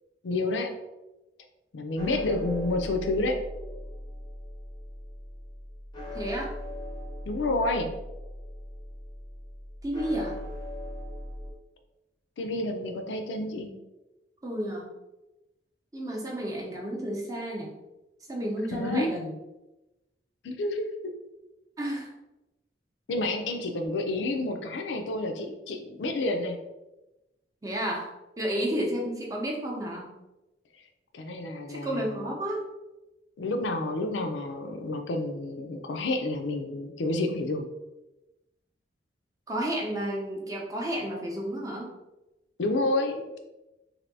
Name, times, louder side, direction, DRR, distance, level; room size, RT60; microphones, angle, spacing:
voice 1, 0.2-0.7 1.7-3.4 7.3-7.9 12.4-13.7 18.7-19.1 20.4-21.0 23.1-26.6 30.7-30.8 31.1-32.3 33.4-37.7 42.6-43.4, left 2 dB, 90° left, 5 dB, 0.4 m, -29 dB
sound 1, 2.0-11.5, left 1 dB, 25° left, 0.5 m, -39 dB
voice 2, 6.1-6.5 9.8-10.4 14.4-14.9 15.9-17.7 18.3-19.3 21.8-22.1 27.6-30.1 31.7-32.6 39.5-41.9, right 1 dB, 20° right, -2 dB, 0.6 m, -31 dB
3.3 x 2.6 x 2.6 m, 0.99 s
head